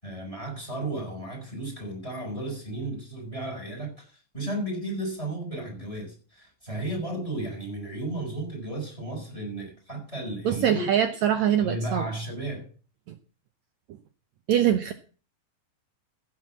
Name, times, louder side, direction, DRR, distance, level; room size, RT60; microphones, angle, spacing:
voice 1, 0.0-10.9 11.6-12.7, right 1 dB, 10° left, 5.6 m, -34 dB
voice 2, 10.4-12.1 14.5-14.9, right 10 dB, 80° right, 1.6 m, -23 dB
16.0 x 6.1 x 7.3 m
omnidirectional pair, 4.2 m